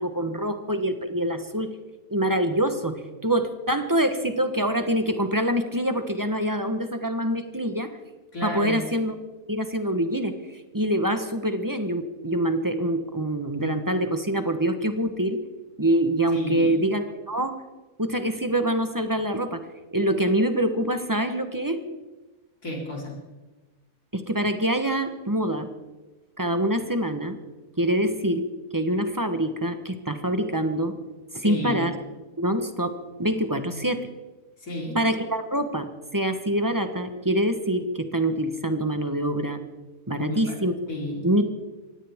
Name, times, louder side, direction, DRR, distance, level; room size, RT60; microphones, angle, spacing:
voice 1, 0.0-1.8 2.1-7.9 8.4-9.1 9.5-15.4 15.8-17.6 18.0-19.6 19.9-21.8 24.1-25.7 26.4-27.4 27.8-28.5 28.7-31.0 31.3-32.0 32.4-34.0 34.9-39.6 40.1-40.7 41.2-41.4, right 1 dB, 15° right, 8 dB, 1.0 m, -25 dB
voice 2, 8.3-8.8 16.3-16.8 22.6-23.2 31.4-31.8 34.6-35.0 40.2-40.6 40.9-41.3, left 1 dB, 70° left, -2 dB, 4.5 m, -32 dB
23.5 x 17.0 x 3.6 m, 1.2 s
omnidirectional pair, 1.5 m